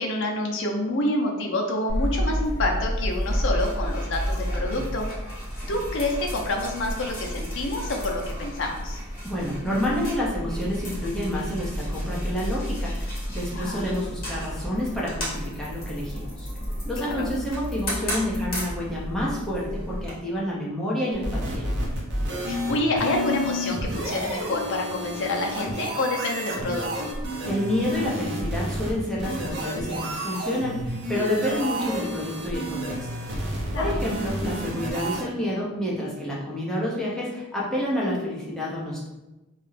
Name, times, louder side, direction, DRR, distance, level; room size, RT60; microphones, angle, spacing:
voice 1, 0.0-5.1 5.7-9.0 13.5-13.9 17.0-17.3 22.5-27.1 31.2-31.7 33.7-34.0, left 2 dB, 60° left, 1 dB, 0.5 m, -28 dB
sound 1, 1.9-20.1, equal, 45° left, 0.9 m, -31 dB
voice 2, 9.2-16.5 16.8-21.6 27.5-33.1 33.8-39.1, left 1 dB, ahead, -6 dB, 0.5 m, -29 dB
sound 2, 21.1-35.2, equal, 55° right, 0.5 m, -30 dB
2.3 x 2.0 x 3.1 m, 1.0 s
head